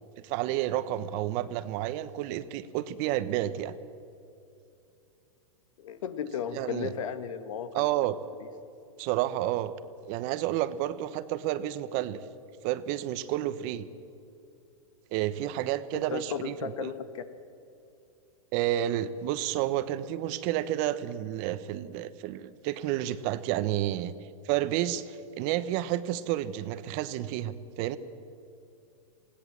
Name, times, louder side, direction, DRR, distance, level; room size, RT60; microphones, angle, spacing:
voice 1, 0.2-3.7 6.5-6.9 7.7-8.2 9.0-9.7 10.1-12.2 12.6-13.9 15.1-16.9 18.5-24.1 24.4-28.0, right 13 dB, 45° right, 14 dB, 1.0 m, -30 dB
voice 2, 5.8-7.9 8.4-8.5 16.1-17.2, left 7 dB, 70° left, 11 dB, 1.6 m, -35 dB
20.5 x 17.0 x 7.5 m, 2.7 s
hypercardioid pair, 125°, 18 cm